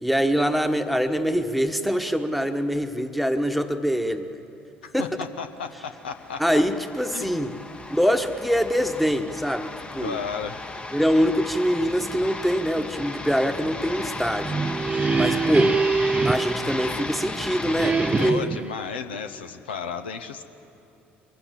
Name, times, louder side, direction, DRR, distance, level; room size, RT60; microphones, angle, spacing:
voice 1, 0.0-4.3 4.9-5.1 6.4-7.5 7.9-10.2 10.9-14.6 15.2-15.7 16.2-18.5, equal, ahead, 8 dB, 1.3 m, -24 dB
voice 2, 4.8-6.6 7.1-7.2 10.0-10.6 14.9-15.4 18.2-20.4, left 6 dB, 80° left, 8 dB, 0.8 m, -34 dB
sound 1, 5.8-18.3, left 2 dB, 15° left, 1.0 m, -35 dB
sound 2, 14.3-17.3 17.8-18.7, right 4 dB, 20° right, 0.5 m, -25 dB
22.5 x 15.5 x 8.4 m, 2.8 s
hypercardioid pair, 60°, 6 cm